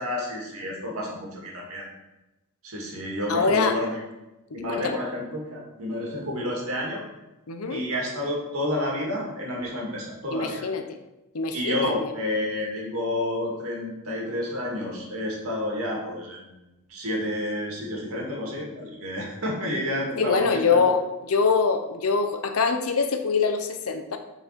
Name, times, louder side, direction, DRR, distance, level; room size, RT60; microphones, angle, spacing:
voice 1, 0.0-1.9 2.6-4.0 4.5-7.0 7.7-10.7 11.5-16.5 16.9-20.8, left 1 dB, 80° right, -2 dB, 1.9 m, -30 dB
voice 2, 3.3-3.8 4.8-5.0 7.5-7.8 10.3-10.8 11.3-12.1 20.2-24.2, left 5 dB, 80° left, 7 dB, 0.7 m, -24 dB
6.9 x 4.1 x 4.3 m, 0.99 s
head